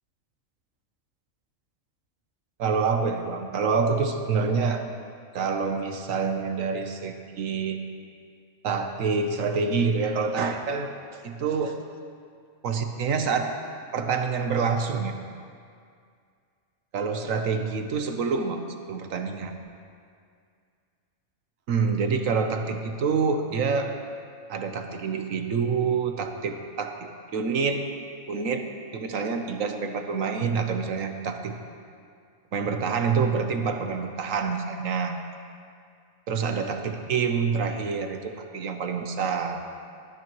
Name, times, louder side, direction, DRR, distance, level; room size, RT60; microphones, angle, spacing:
voice 1, 2.6-4.9 5.3-7.8 8.6-10.9 11.2-11.8 12.6-13.5 13.9-15.2 16.9-19.6 21.7-23.9 24.5-27.9 28.3-28.7 28.9-31.6 32.5-35.2 36.3-39.6, right 5 dB, 90° right, 5 dB, 1.3 m, -27 dB
19.0 x 12.0 x 3.1 m, 2.2 s
omnidirectional pair, 1.4 m